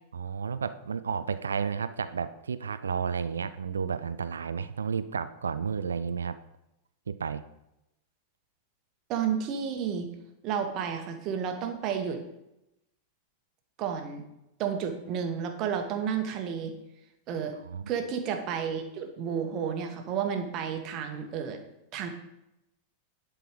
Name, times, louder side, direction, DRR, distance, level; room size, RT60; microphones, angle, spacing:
voice 1, 0.1-6.4 7.1-7.4 17.6-17.9, right 6 dB, 70° right, 13 dB, 0.4 m, -32 dB
voice 2, 9.1-10.1 10.4-12.2 13.8-14.2 14.6-16.7 17.3-17.5 17.9-21.6 21.9-22.1, right 7 dB, 35° right, 6 dB, 1.3 m, -31 dB
11.0 x 4.7 x 5.0 m, 0.87 s
figure-of-eight pair, 90°, 0 cm